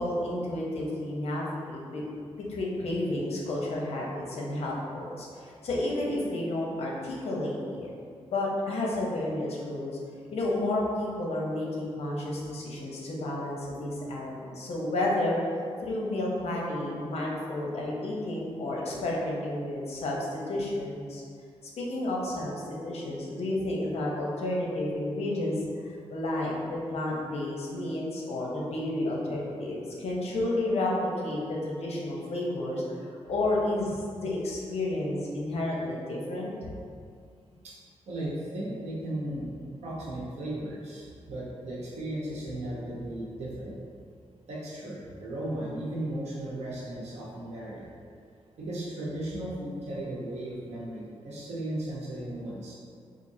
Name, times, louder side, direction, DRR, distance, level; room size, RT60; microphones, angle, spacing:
voice 1, 0.0-2.0 2.5-7.9 8.3-10.0 10.3-15.4 15.8-21.2 21.8-25.6 26.1-36.7, left 1 dB, 70° left, -3 dB, 0.7 m, -31 dB
voice 2, 38.1-39.5 39.8-43.8 44.5-47.8 48.6-52.7, right 1 dB, 85° right, -6 dB, 1.0 m, -36 dB
4.6 x 2.5 x 2.7 m, 2.2 s
wide cardioid pair, 135°, 11 cm